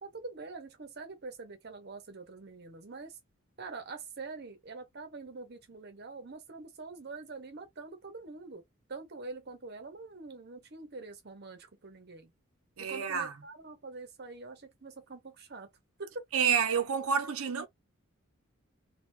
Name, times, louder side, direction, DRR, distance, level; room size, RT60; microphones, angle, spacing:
voice 1, 0.0-3.2 3.6-8.6 8.9-12.3 12.8-15.7 16.0-16.1, right 3 dB, 50° right, 0.9 m, -45 dB
voice 2, 12.8-13.3 16.3-17.7, right 7 dB, 80° right, 0.7 m, -29 dB
3.2 x 2.4 x 3.1 m
head